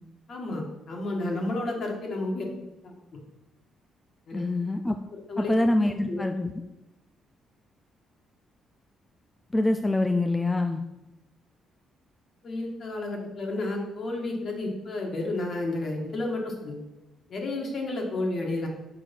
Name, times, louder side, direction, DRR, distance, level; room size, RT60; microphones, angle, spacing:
voice 1, 0.3-2.5 2.8-2.9 4.3-4.4 5.3-5.5 6.1-6.2 12.4-16.8 17.3-18.7, left 2 dB, 55° left, 1 dB, 1.9 m, -31 dB
voice 2, 4.3-5.0 5.4-6.5 9.5-10.8, left 2 dB, 15° left, 6 dB, 0.4 m, -25 dB
6.8 x 4.7 x 5.4 m, 1.0 s
cardioid pair, 90°, 0 cm